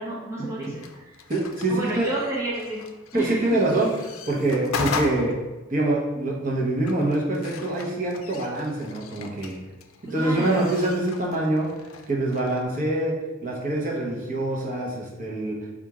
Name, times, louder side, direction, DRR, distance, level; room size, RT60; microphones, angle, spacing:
voice 1, 0.0-1.1 1.7-2.8 3.1-3.7 10.1-10.8, right 1 dB, 15° right, -6 dB, 0.7 m, -30 dB
sound 1, 0.6-12.6, left 4 dB, 80° left, 0.4 m, -38 dB
voice 2, 1.3-2.1 3.1-3.9 4.3-5.3 5.7-9.5 10.1-11.7 12.1-13.1 13.4-15.5, right 2 dB, 40° right, -3 dB, 0.9 m, -25 dB
4.3 x 2.5 x 4.8 m, 1.1 s
head